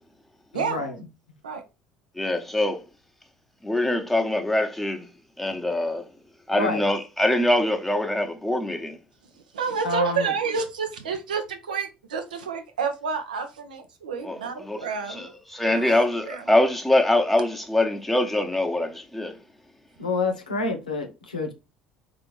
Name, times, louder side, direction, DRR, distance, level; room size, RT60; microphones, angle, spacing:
voice 1, 0.5-1.0 6.5-6.9 9.8-10.3 20.0-21.5, left 3 dB, 90° left, 0.7 m, -28 dB
voice 2, 2.2-2.8 3.6-5.1 5.4-6.0 6.5-9.0 14.2-14.4 14.7-14.8 15.1-19.4, left 1 dB, 5° left, 0.9 m, -23 dB
voice 3, 9.5-15.3 15.6-16.4, right 5 dB, 80° right, 0.6 m, -29 dB
4.2 x 2.7 x 3.1 m
figure-of-eight pair, 60°, 4 cm